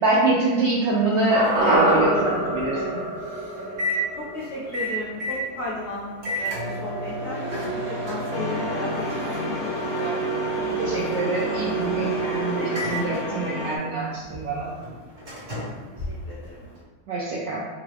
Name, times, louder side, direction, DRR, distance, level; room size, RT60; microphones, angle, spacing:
voice 1, 0.0-2.8 10.8-14.8 17.1-17.6, right 2 dB, 75° right, -4 dB, 0.6 m, -25 dB
Microwave oven, 1.1-16.8, right 3 dB, 40° right, 1.3 m, -31 dB
sound 1, 1.3-5.6 5.9-6.0, right 1 dB, 60° right, 1.0 m, -25 dB
voice 2, 2.7-3.1 3.5-3.8 4.2-10.2 15.6-16.7, left 1 dB, 45° left, -10 dB, 1.6 m, -35 dB
sound 2, 8.3-13.8, left 3 dB, 65° left, 0.8 m, -31 dB
3.7 x 2.3 x 3.3 m, 1.3 s
omnidirectional pair, 1.7 m